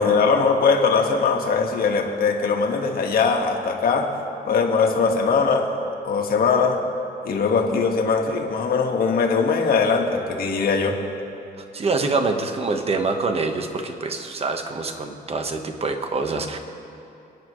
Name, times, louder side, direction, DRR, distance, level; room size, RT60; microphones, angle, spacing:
voice 1, 0.0-4.1 4.4-5.7 6.0-6.8 7.2-11.0, left 5 dB, 60° left, 2 dB, 1.6 m, -21 dB
voice 2, 11.7-16.6, right 3 dB, 35° right, 5 dB, 1.2 m, -25 dB
29.5 x 9.9 x 3.2 m, 2.8 s
cardioid pair, 110°, 17 cm